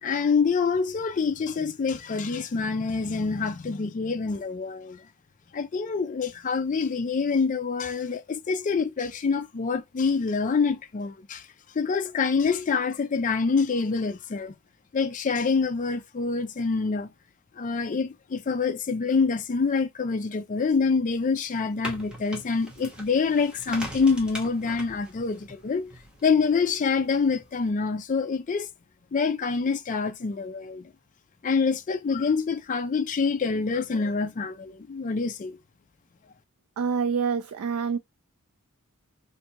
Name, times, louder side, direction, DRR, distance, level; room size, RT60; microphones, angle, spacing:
voice 1, 0.0-5.1 5.5-11.5 11.7-14.6 14.9-17.1 17.5-25.9 26.2-28.7 29.1-30.9 31.4-35.6, left 5 dB, 35° left, 0.4 m, -26 dB
sound 1, 21.5-27.7, equal, 5° right, 0.8 m, -42 dB
voice 2, 36.8-38.0, right 6 dB, 75° right, 0.3 m, -26 dB
3.3 x 2.6 x 2.8 m
head